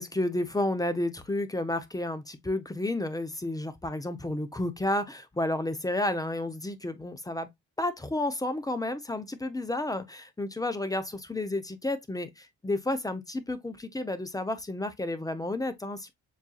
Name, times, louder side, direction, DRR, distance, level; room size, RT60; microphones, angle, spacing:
voice 1, 0.0-7.5 7.8-16.1, left 1 dB, 10° left, 0.8 m, -31 dB
7.3 x 2.7 x 2.4 m
cardioid pair, 90°, 30 cm